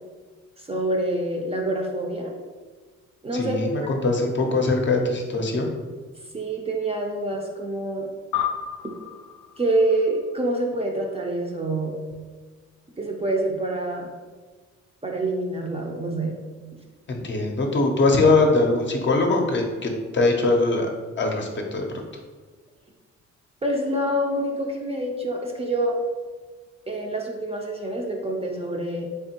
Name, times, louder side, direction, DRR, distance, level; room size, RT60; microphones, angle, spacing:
voice 1, 0.6-2.4 3.2-3.9 6.3-8.1 9.6-12.0 13.0-14.1 15.0-16.4 23.6-26.0 26.9-29.1, right 1 dB, 20° right, 0 dB, 0.5 m, -26 dB
voice 2, 3.3-5.7 17.1-20.9 21.2-21.8, left 2 dB, 40° left, 2 dB, 0.6 m, -22 dB
sound 1, 8.3-11.1, left 9 dB, 90° left, 0.5 m, -33 dB
3.5 x 3.5 x 2.9 m, 1.4 s
cardioid pair, 90°, 30 cm